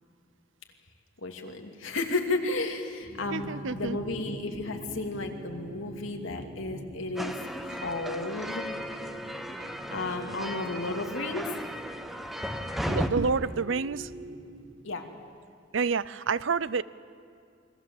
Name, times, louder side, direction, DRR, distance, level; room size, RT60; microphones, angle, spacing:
voice 1, 1.2-7.4 7.6-8.7 9.9-11.5 14.8-15.0, left 2 dB, 90° left, 3 dB, 2.6 m, -33 dB
sound 1, 3.0-14.7, right 1 dB, 50° right, 5.7 m, -46 dB
voice 2, 3.3-4.0 12.9-14.1 15.7-16.8, right 5 dB, 75° right, 18 dB, 0.6 m, -28 dB
sound 2, 7.2-13.1, equal, ahead, 1.2 m, -35 dB
28.5 x 22.5 x 7.8 m, 2.3 s
head